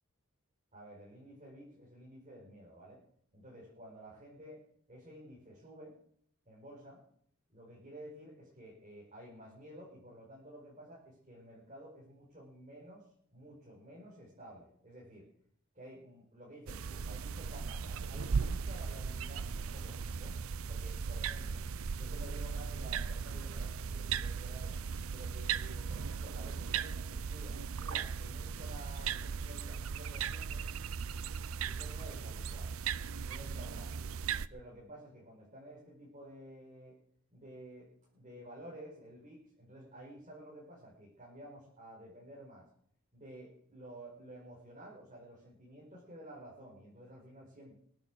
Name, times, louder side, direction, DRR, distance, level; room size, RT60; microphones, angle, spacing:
voice 1, 0.7-3.0 3.3-4.6 4.9-6.0 6.5-7.0 7.5-13.0 13.3-15.3 15.7-20.3 20.7-21.6 21.9-24.8 25.1-30.7 31.7-32.8 33.2-33.9 34.5-37.0 37.3-42.7 43.1-47.7, right 1 dB, 35° right, -5 dB, 5.2 m, -52 dB
sound 1, 16.7-34.5, right 6 dB, 85° right, 0.6 m, -37 dB
22.5 x 9.1 x 6.4 m, 0.65 s
head